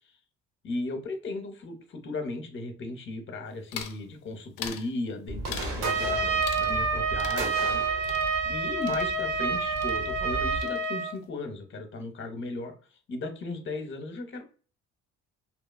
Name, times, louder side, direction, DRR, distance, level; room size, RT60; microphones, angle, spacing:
voice 1, 0.6-12.7 13.1-14.4, left 2 dB, 40° left, 6 dB, 0.7 m, -36 dB
sound 1, 3.7-4.0 4.6-4.9 5.5-5.8 6.4-6.9 7.2-9.5 9.8-10.3 10.6-11.2, left 9 dB, 80° left, 0.5 m, -41 dB
sound 2, 5.3-10.6, right 1 dB, 85° right, 0.8 m, -37 dB
Trumpet, 5.8-11.1, right 4 dB, 50° right, 0.8 m, -28 dB
2.8 x 2.2 x 2.3 m, 0.37 s
supercardioid pair, 75°, 31 cm